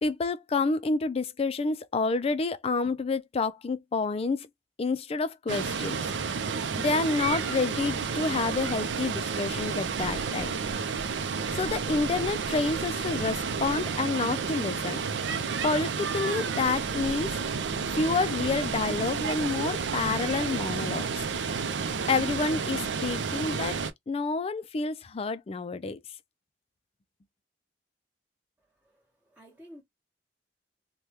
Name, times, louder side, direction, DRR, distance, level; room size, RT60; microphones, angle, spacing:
voice 1, 0.0-4.5 4.8-6.0 6.8-10.9 11.5-15.0 15.6-17.4 17.9-21.6 22.1-23.8 24.1-26.0, left 4 dB, 35° left, 0.4 m, -29 dB
Water, 5.5-23.9, right 5 dB, 85° right, 0.5 m, -31 dB
voice 2, 28.6-29.8, equal, 5° right, 0.9 m, -53 dB
3.2 x 2.2 x 2.8 m
head